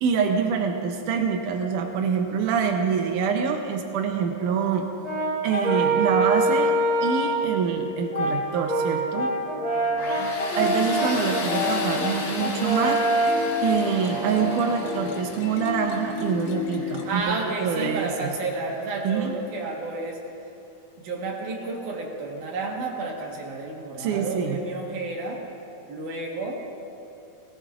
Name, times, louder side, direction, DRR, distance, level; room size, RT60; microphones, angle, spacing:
voice 1, 0.0-4.9 5.4-6.7 7.0-9.3 10.6-13.0 13.6-17.4 17.6-18.3 19.0-19.3 24.0-24.6, right 6 dB, 85° right, 4 dB, 1.8 m, -25 dB
Brass instrument, 5.0-7.5 8.1-15.1, right 1 dB, 15° left, 2.2 m, -25 dB
voice 2, 9.6-10.4 16.8-20.2 21.0-25.4 25.9-26.6, right 3 dB, 60° right, 0 dB, 2.5 m, -31 dB
Tools, 10.0-18.7, left 3 dB, 60° left, 3.1 m, -37 dB
sound 1, 10.6-17.2, left 6 dB, 85° left, 3.0 m, -34 dB
17.5 x 17.5 x 2.4 m, 2.8 s
omnidirectional pair, 4.6 m